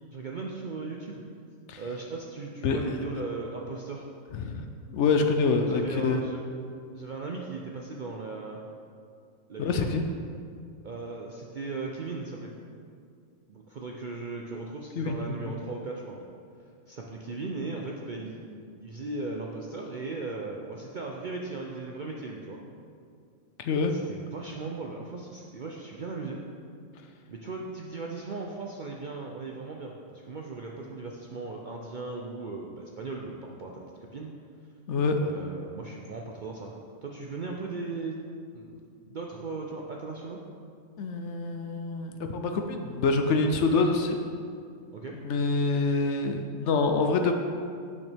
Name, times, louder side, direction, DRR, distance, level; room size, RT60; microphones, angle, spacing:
voice 1, 0.1-1.2 1.8-4.0 5.6-6.4 6.9-8.6 9.5-9.9 10.8-12.6 13.5-16.3 16.9-22.6 23.7-26.4 27.3-34.3 35.2-38.2 38.5-40.4 43.7-43.9 44.9-45.2, right 3 dB, 60° right, -1 dB, 0.5 m, -37 dB
voice 2, 4.3-6.2 9.6-10.0 15.0-15.3 23.6-23.9 34.9-35.2 41.0-44.2 45.3-47.3, left 4 dB, 65° left, 5 dB, 0.8 m, -26 dB
8.7 x 6.5 x 3.4 m, 2.3 s
omnidirectional pair, 1.4 m